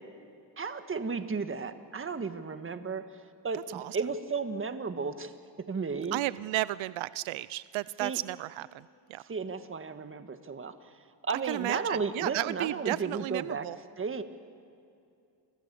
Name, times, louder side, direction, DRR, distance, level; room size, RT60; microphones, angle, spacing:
voice 1, 0.6-3.0 3.4-5.3 5.7-6.2 8.0-8.2 9.3-10.7 11.2-13.7 14.0-14.2, right 5 dB, 25° right, 8 dB, 1.6 m, -34 dB
voice 2, 6.1-8.7 9.1-9.2 11.5-13.8, right 17 dB, 80° right, 17 dB, 0.6 m, -33 dB
29.5 x 24.0 x 7.0 m, 2.5 s
cardioid pair, 120°, 46 cm